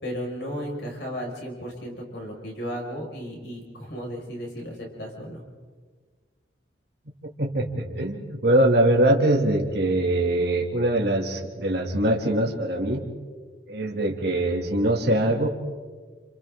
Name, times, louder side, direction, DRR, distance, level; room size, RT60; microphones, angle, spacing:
voice 1, 0.0-5.4, equal, 65° left, 0 dB, 5.9 m, -34 dB
voice 2, 7.4-13.0 13.7-15.5, right 1 dB, 60° right, 1 dB, 2.6 m, -22 dB
29.5 x 28.5 x 3.8 m, 1.5 s
head